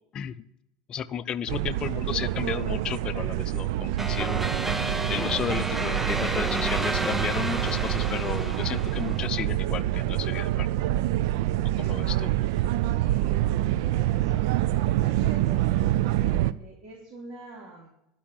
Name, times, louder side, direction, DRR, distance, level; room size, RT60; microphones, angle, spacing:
voice 1, 0.9-4.5 5.1-10.7 11.8-12.3, left 9 dB, 40° left, 12 dB, 0.6 m, -33 dB
sound 1, 1.5-16.5, right 14 dB, 70° right, 0.5 m, -26 dB
sound 2, 4.0-9.5, right 2 dB, 10° right, 0.6 m, -31 dB
sound 3, 4.6-9.3, left 2 dB, 10° left, 4.7 m, -49 dB
voice 2, 12.8-14.5 14.8-17.9, right 4 dB, 45° right, -3 dB, 3.0 m, -44 dB
11.5 x 5.5 x 8.9 m, 0.82 s
hypercardioid pair, 95°, 2 cm